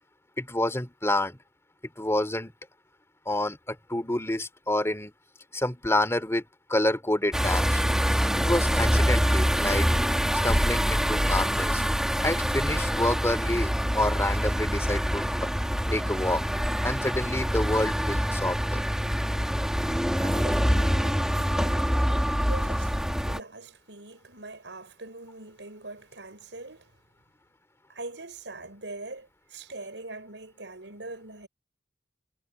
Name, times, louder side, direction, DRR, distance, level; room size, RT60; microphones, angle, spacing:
voice 1, 0.4-1.4 2.0-2.5 3.3-5.1 5.5-6.4 6.7-7.8 8.4-9.9 10.4-11.8 12.2-15.2 15.9-16.4 16.8-18.8, left 1 dB, 15° left, 2.9 m, -28 dB
sound 1, 7.3-23.4, equal, 5° right, 1.8 m, -25 dB
voice 2, 20.2-26.9 27.9-31.5, right 2 dB, 85° right, 5.1 m, -43 dB
head